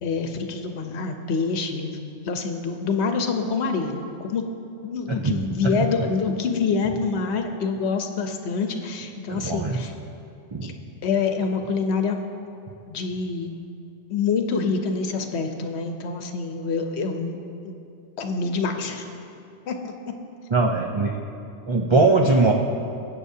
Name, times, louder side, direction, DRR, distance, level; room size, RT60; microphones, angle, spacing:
voice 1, 0.0-4.4 4.8-9.9 10.6-10.7 11.0-12.2 12.9-13.6 14.1-17.4 17.6-17.8 18.2-19.0 19.7-19.9, left 4 dB, 70° left, 5 dB, 1.1 m, -26 dB
voice 2, 9.3-9.8 10.5-10.7 20.5-21.1 21.7-22.5, right 3 dB, 40° right, 1 dB, 0.4 m, -20 dB
23.0 x 8.3 x 2.7 m, 2.6 s
omnidirectional pair, 1.2 m